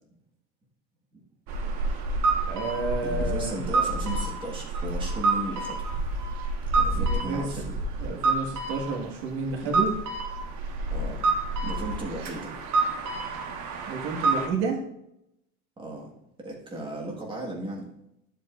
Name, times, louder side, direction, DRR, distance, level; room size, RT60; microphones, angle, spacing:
sound 1, 1.5-14.5, right 3 dB, 55° right, 1.5 m, -28 dB
voice 1, 2.5-3.6 6.9-9.9 13.9-14.8, right 4 dB, 70° right, 0 dB, 1.8 m, -31 dB
voice 2, 3.0-5.8 6.7-7.7 9.6-9.8 10.9-11.3 11.6-12.5 15.8-16.1 16.4-17.9, right 2 dB, 15° right, -2 dB, 1.6 m, -36 dB
11.0 x 7.6 x 2.5 m, 0.82 s
cardioid pair, 160°, 35 cm